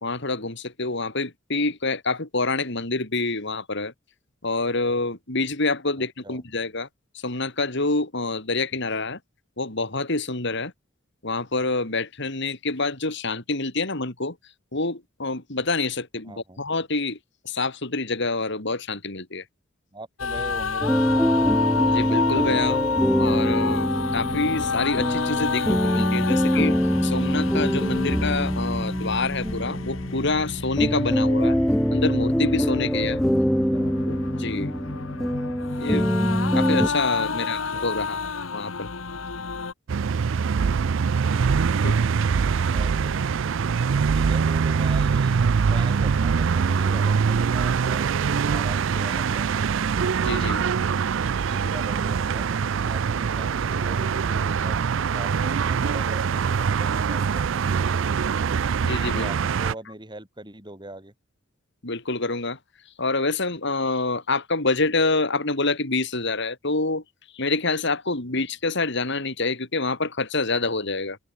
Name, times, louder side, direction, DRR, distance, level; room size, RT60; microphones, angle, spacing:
voice 1, 0.0-3.9 4.4-6.9 7.2-9.2 9.6-10.7 11.2-14.4 14.7-17.2 17.5-19.4 21.9-26.8 27.0-31.6 31.9-33.2 34.1-34.7 35.8-36.1 36.5-38.9 41.8-42.0 50.2-50.7 58.8-59.3 61.8-62.6 63.0-67.0 67.3-71.2, left 3 dB, 60° left, 3.6 m, -27 dB
voice 2, 16.3-16.6 19.9-21.5 33.4-34.0 37.3-38.1 42.7-43.2 44.1-49.7 51.4-54.7 55.1-58.0 59.1-61.1 68.2-68.4, right 1 dB, 20° right, 7.8 m, -41 dB
sound 1, 20.2-39.7, left 4 dB, 75° left, 1.3 m, -30 dB
sound 2, 20.8-36.9, equal, ahead, 0.8 m, -24 dB
sound 3, 39.9-59.7, right 6 dB, 65° right, 0.4 m, -23 dB
open air
head